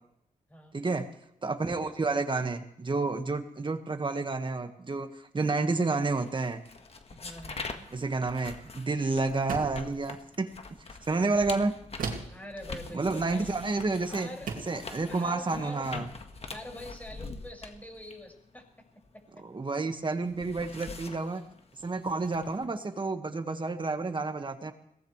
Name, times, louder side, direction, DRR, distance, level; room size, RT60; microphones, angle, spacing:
voice 1, 0.7-1.1 1.4-6.6 7.9-10.5 11.1-11.7 12.9-14.3 14.7-16.1 19.4-21.4 21.8-24.7, right 3 dB, 35° right, 6 dB, 1.7 m, -30 dB
sound 1, 6.2-19.7 20.0-22.7, left 3 dB, 50° left, 1.6 m, -44 dB
voice 2, 7.1-7.9 12.3-13.6 14.1-15.9 16.5-18.6 19.1-19.2, left 1 dB, 10° left, 1 dB, 5.9 m, -45 dB
sound 2, 9.5-9.9 12.0-12.4 13.8-13.9 14.5-14.8, right 5 dB, 90° right, 2.4 m, -35 dB
22.0 x 18.0 x 3.3 m, 0.76 s
cardioid pair, 75°, 14 cm